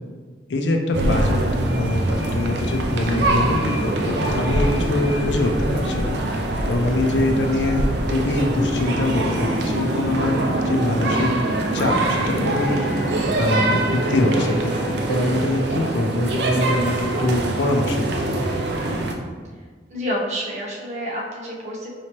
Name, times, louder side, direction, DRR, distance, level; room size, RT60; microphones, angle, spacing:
voice 1, 0.5-6.2 6.7-10.4 10.6-11.3 11.7-13.1 13.4-18.4, left 1 dB, 85° left, 3 dB, 0.5 m, -23 dB
sound 1, 0.9-19.1, right 1 dB, 70° right, 0.5 m, -24 dB
sound 2, 8.6-13.9, right 1 dB, 25° left, 1.0 m, -29 dB
Wind instrument woodwind instrument, 12.3-19.0, right 9 dB, 5° right, 0.5 m, -36 dB
voice 2, 19.9-22.0, equal, 40° right, -3 dB, 0.8 m, -29 dB
4.8 x 3.0 x 2.9 m, 1.5 s
head